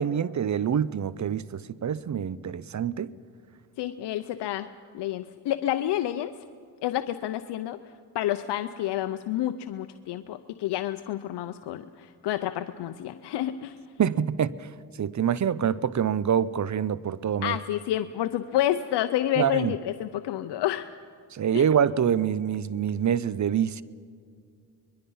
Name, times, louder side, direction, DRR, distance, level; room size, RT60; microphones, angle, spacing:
voice 1, 0.0-3.1 14.0-14.7 15.0-17.6 19.4-19.7 21.3-23.8, right 8 dB, 45° right, 0.7 m, -26 dB
voice 2, 3.8-4.7 4.9-6.3 6.8-7.8 8.1-13.8 17.4-20.8 21.5-21.6, left 12 dB, 90° left, 0.7 m, -29 dB
24.5 x 21.5 x 5.6 m
cardioid pair, 70°, 40 cm